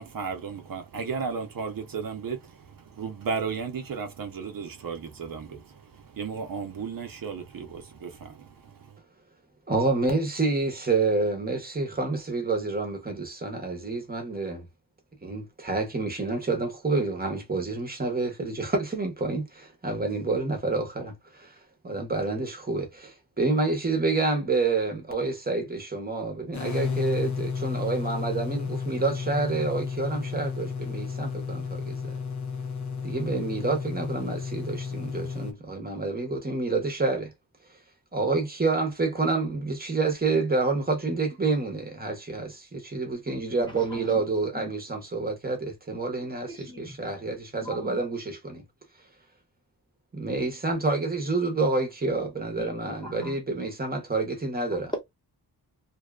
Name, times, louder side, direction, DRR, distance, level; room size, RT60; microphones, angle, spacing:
voice 1, 0.0-9.0, right 5 dB, 60° right, 0.7 m, -35 dB
voice 2, 9.7-14.7 15.2-21.6 21.8-32.2 33.0-37.3 38.1-48.6 50.1-54.9, right 3 dB, 25° right, 0.8 m, -28 dB
sound 1, 26.5-35.5, left 5 dB, 50° left, 0.5 m, -32 dB
voice 3, 43.6-44.8 46.2-47.0 47.6-48.0 52.6-53.4 54.7-55.0, equal, 10° left, 1.0 m, -40 dB
2.7 x 2.3 x 2.3 m
wide cardioid pair, 155°, 38 cm